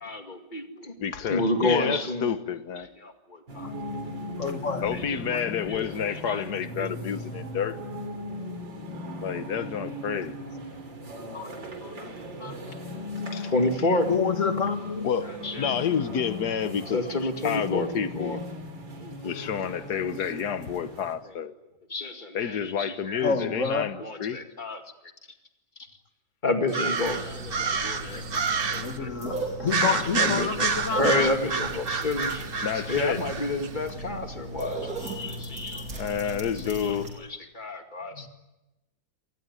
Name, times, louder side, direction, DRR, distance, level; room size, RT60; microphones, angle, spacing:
voice 1, 0.0-0.9 1.3-2.3 3.0-3.7 4.9-6.4 6.8-6.9 11.2-11.9 12.4-12.5 13.2-14.1 15.4-15.7 16.9-18.4 19.0-19.6 21.9-23.7 24.0-24.8 26.4-29.1 30.2-32.5 32.9-37.0 37.3-38.3, left 2 dB, 25° left, 2.3 m, -30 dB
voice 2, 1.0-2.9 4.8-7.8 9.2-10.4 13.3-13.5 15.0-15.3 15.6-18.4 19.2-21.5 22.3-24.4 32.6-33.2 36.0-37.1, left 8 dB, 60° left, 1.7 m, -29 dB
sound 1, 3.5-21.1, left 1 dB, 70° right, 4.4 m, -37 dB
voice 3, 4.4-4.9 14.1-15.0 23.2-24.0 28.7-31.4, left 5 dB, 40° left, 2.0 m, -28 dB
sound 2, 26.7-29.0 29.7-33.7, right 5 dB, 35° right, 1.1 m, -29 dB
sound 3, 27.0-37.1, right 1 dB, 50° right, 5.1 m, -37 dB
27.5 x 19.5 x 9.8 m
omnidirectional pair, 2.1 m